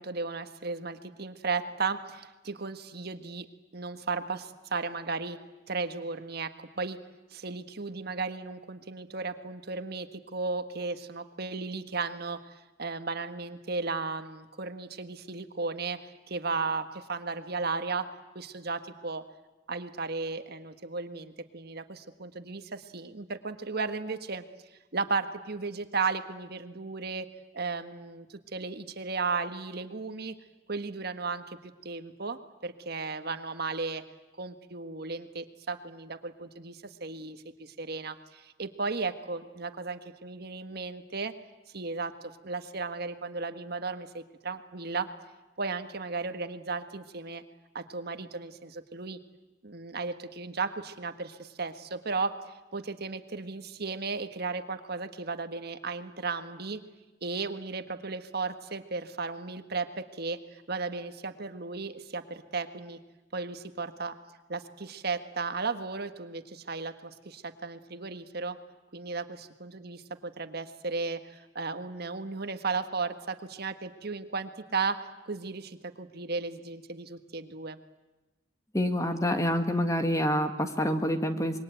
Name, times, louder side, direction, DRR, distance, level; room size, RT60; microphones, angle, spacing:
voice 1, 0.0-3.4 3.7-5.4 5.7-7.0 7.3-12.4 12.8-19.2 19.7-24.4 24.9-27.3 27.5-30.3 30.7-31.6 31.8-34.0 34.4-41.3 41.7-42.1 42.4-45.1 45.6-47.4 47.7-49.2 49.6-56.8 57.2-63.0 63.3-64.1 64.5-68.6 68.9-77.8, right 4 dB, 55° right, 9 dB, 1.5 m, -35 dB
voice 2, 78.7-81.6, equal, 15° left, 7 dB, 1.9 m, -27 dB
26.5 x 22.5 x 9.2 m, 1.1 s
head